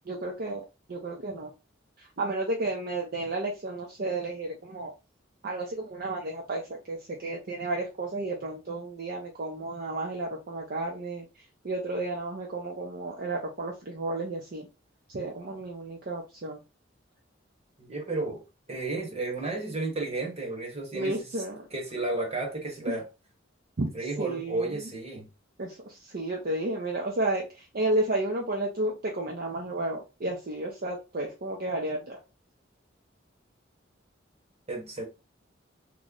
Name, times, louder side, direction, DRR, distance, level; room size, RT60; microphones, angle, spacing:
voice 1, 0.1-1.5 2.0-4.9 5.4-11.3 11.6-14.7 15.1-16.6 20.9-21.7 22.9-23.0 23.8-23.9 24.2-24.7 25.6-32.2, right 2 dB, 50° right, 0.6 m, -32 dB
voice 2, 17.8-18.4 18.7-21.3 21.7-23.0 23.9-25.3 34.7-35.0, right 2 dB, 35° right, 1.2 m, -32 dB
3.1 x 2.1 x 3.7 m
head